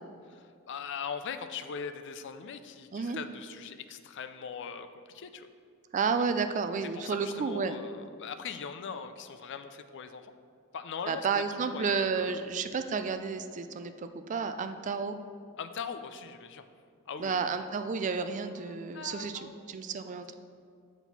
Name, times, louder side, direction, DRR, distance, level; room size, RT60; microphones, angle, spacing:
voice 1, 0.3-5.5 7.0-10.3 10.7-12.3 15.6-16.6 17.1-17.6 18.6-19.8, left 6 dB, 55° left, 10 dB, 0.4 m, -41 dB
voice 2, 2.9-3.2 5.9-7.8 11.1-15.2 17.2-20.4, right 5 dB, 35° right, 9 dB, 0.3 m, -31 dB
7.1 x 4.1 x 5.8 m, 2.3 s
head